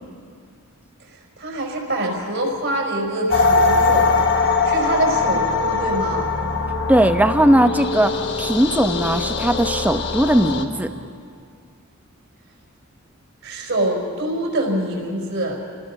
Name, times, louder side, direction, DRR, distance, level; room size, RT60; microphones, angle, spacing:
voice 1, 1.4-4.2 4.6-6.3 13.4-15.6, right 1 dB, 60° right, 1 dB, 5.2 m, -25 dB
sound 1, 3.3-10.6, left 4 dB, 60° left, 1.4 m, -21 dB
voice 2, 6.9-10.9, right 1 dB, 5° right, 8 dB, 0.8 m, -18 dB
29.5 x 19.5 x 6.0 m, 2.3 s
head